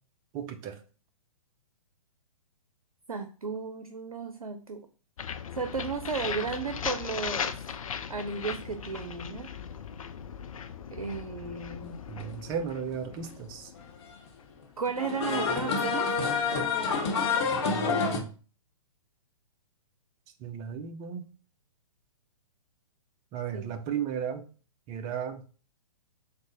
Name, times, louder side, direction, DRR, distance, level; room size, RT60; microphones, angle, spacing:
voice 1, 0.3-0.8 12.1-13.7 17.6-18.3 20.4-21.2 23.3-24.4 24.9-25.5, right 8 dB, 20° right, 7 dB, 0.3 m, -35 dB
voice 2, 3.1-4.9 5.5-7.6 8.1-9.5 10.9-12.0 14.8-16.1 23.5-23.8, right 5 dB, 85° right, 7 dB, 0.4 m, -34 dB
sound 1, 5.2-15.0, left 7 dB, 70° left, 0.4 m, -38 dB
sound 2, 13.0-13.1 14.9-18.2, left 5 dB, 45° left, 0.9 m, -27 dB
3.6 x 2.0 x 3.8 m, 0.38 s
figure-of-eight pair, 120°, 18 cm